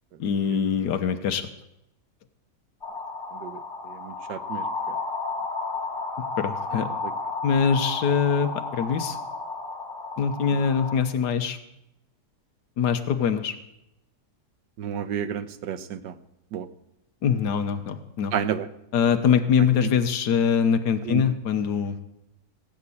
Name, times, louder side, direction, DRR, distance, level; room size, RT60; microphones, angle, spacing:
voice 1, 0.2-1.5 6.4-6.9 7.4-9.2 10.2-11.6 12.8-13.5 17.2-18.3 18.9-22.0, left 7 dB, 75° left, 8 dB, 1.6 m, -23 dB
sound 1, 2.8-11.0, left 3 dB, 40° left, 2.8 m, -33 dB
voice 2, 4.0-4.6 14.8-16.1 16.5-16.7 18.3-18.7 21.1-21.2, right 9 dB, 85° right, 12 dB, 1.5 m, -30 dB
17.5 x 7.5 x 8.5 m, 0.86 s
omnidirectional pair, 1.8 m